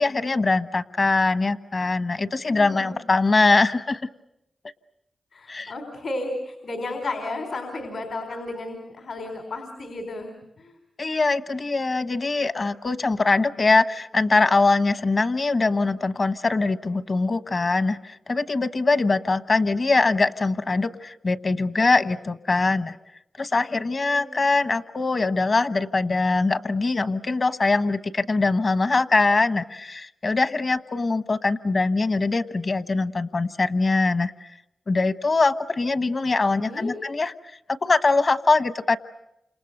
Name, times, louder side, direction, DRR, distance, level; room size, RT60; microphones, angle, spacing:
voice 1, 0.0-4.0 5.5-5.7 11.0-23.0 23.4-34.3 34.9-37.3 37.7-39.0, left 3 dB, 55° left, 12 dB, 1.2 m, -22 dB
voice 2, 2.4-2.9 5.3-10.8 24.0-24.2 36.5-37.0, left 2 dB, 80° left, 4 dB, 4.0 m, -33 dB
29.5 x 27.5 x 6.6 m, 0.83 s
cardioid pair, 40°, 0 cm